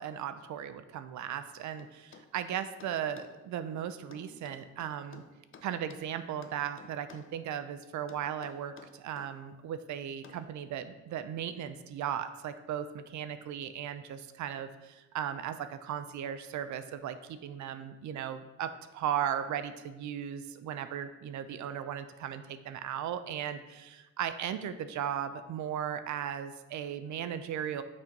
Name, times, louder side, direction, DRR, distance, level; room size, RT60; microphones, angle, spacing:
voice 1, 0.0-5.2 5.6-27.8, right 9 dB, 70° right, 11 dB, 0.5 m, -37 dB
sound 1, 1.8-3.4 4.1-6.1 6.4-7.3 8.1-9.3 10.2-10.5, left 5 dB, 45° left, 0.6 m, -53 dB
6.0 x 4.4 x 5.2 m, 1.1 s
cardioid pair, 90°, 30 cm